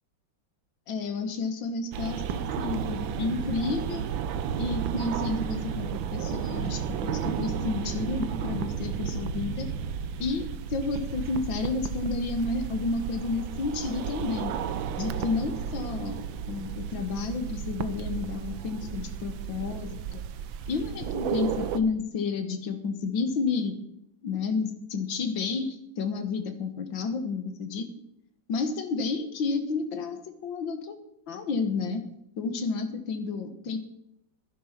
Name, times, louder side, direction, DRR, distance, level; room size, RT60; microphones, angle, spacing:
voice 1, 0.9-4.1 4.6-9.7 10.2-14.5 15.0-16.2 16.5-20.2 20.7-23.7 24.2-27.9 28.5-31.0 31.3-32.0 32.4-33.8, left 4 dB, 80° left, 8 dB, 2.1 m, -31 dB
sound 1, 1.9-21.8, right 8 dB, 85° right, 1.5 m, -33 dB
12.0 x 10.0 x 5.9 m, 0.77 s
omnidirectional pair, 2.1 m